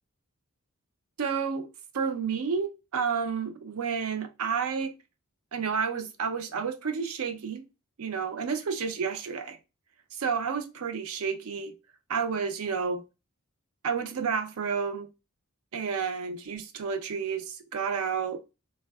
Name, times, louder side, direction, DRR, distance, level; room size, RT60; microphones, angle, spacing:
voice 1, 1.2-1.7 1.9-4.9 5.5-7.7 8.0-9.6 10.1-11.7 12.1-13.0 13.8-15.1 15.7-18.4, right 6 dB, 75° right, 0.5 m, -30 dB
3.3 x 2.1 x 2.2 m
head